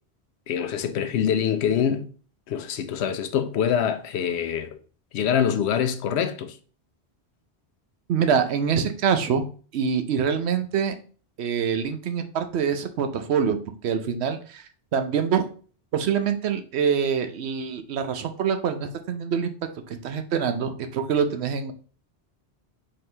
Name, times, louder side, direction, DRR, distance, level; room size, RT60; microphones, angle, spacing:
voice 1, 0.5-2.1 2.5-4.7 5.1-6.6, left 8 dB, 80° left, 0.8 m, -25 dB
voice 2, 8.1-9.5 9.7-10.9 11.4-13.6 13.8-14.6 14.9-15.5 15.9-19.5 19.9-21.7, right 7 dB, 75° right, 0.9 m, -25 dB
4.3 x 3.9 x 3.2 m
omnidirectional pair, 1.1 m